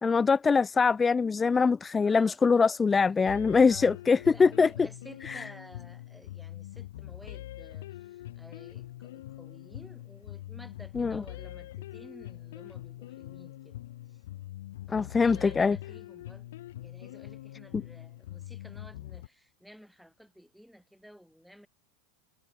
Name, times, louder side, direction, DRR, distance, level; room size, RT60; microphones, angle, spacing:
voice 1, 0.0-4.7 11.0-11.2 14.9-15.8, left 5 dB, 15° left, 0.4 m, -23 dB
voice 2, 2.0-2.7 3.2-3.3 3.7-3.9 4.2-13.8 14.1-14.2 14.9-16.5 16.8-21.7, equal, ahead, 7.3 m, -53 dB
sound 1, 3.3-19.3, left 14 dB, 75° left, 3.3 m, -43 dB
hypercardioid pair, 115°, 0 cm